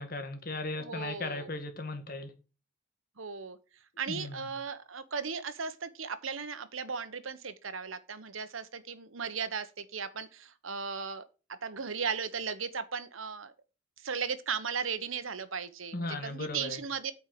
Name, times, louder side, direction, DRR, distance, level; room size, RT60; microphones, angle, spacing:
voice 1, 0.0-2.3 4.1-4.5 15.9-16.8, left 2 dB, 45° left, 1.9 m, -37 dB
voice 2, 0.8-1.5 3.2-3.6 4.0-11.2 11.6-13.5 14.0-17.1, right 6 dB, 85° right, 1.2 m, -36 dB
9.0 x 4.7 x 7.6 m
head